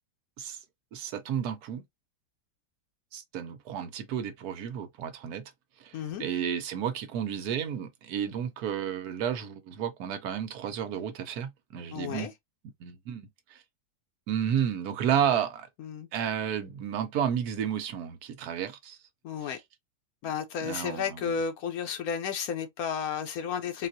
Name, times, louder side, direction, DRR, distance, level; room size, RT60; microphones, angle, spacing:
voice 1, 0.9-1.8 3.1-5.4 5.8-12.3 12.6-13.3 14.3-15.7 16.1-19.0 19.4-19.6 20.6-21.4, right 9 dB, 75° right, 1.2 m, -32 dB
voice 2, 5.9-6.2 11.9-12.3 15.8-16.1 19.2-19.6 20.2-23.9, left 7 dB, 70° left, 1.0 m, -32 dB
3.8 x 2.4 x 2.6 m
omnidirectional pair, 1.7 m